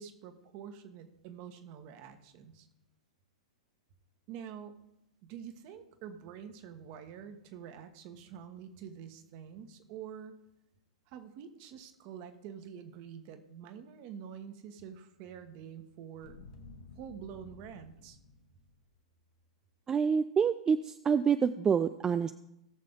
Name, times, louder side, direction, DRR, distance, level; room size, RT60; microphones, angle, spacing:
voice 1, 0.0-2.7 4.3-4.8 5.2-10.3 11.1-16.3 16.9-18.2, right 8 dB, 45° right, 7 dB, 1.5 m, -47 dB
sound 1, 16.2-19.1 19.4-19.5, left 3 dB, 55° left, 1.7 m, -53 dB
voice 2, 19.9-22.3, right 6 dB, 20° right, 11 dB, 0.4 m, -27 dB
18.5 x 6.6 x 3.8 m, 0.84 s
figure-of-eight pair, 105°, 3 cm